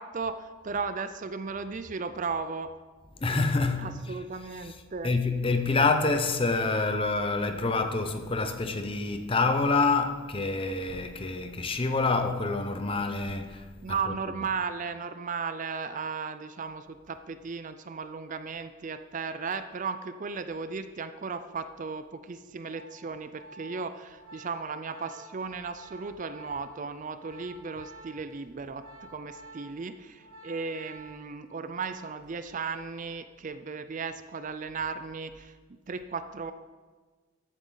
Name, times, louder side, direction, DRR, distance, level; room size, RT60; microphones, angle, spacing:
voice 1, 0.0-2.7 3.8-5.1 13.8-28.8 29.1-35.6 35.9-36.5, right 5 dB, 35° right, 0.4 m, -35 dB
voice 2, 3.2-14.5, left 3 dB, 25° left, 0.7 m, -27 dB
Organ, 22.3-32.4 32.6-32.9, right 2 dB, 80° right, 3.6 m, -50 dB
13.5 x 9.1 x 3.9 m
head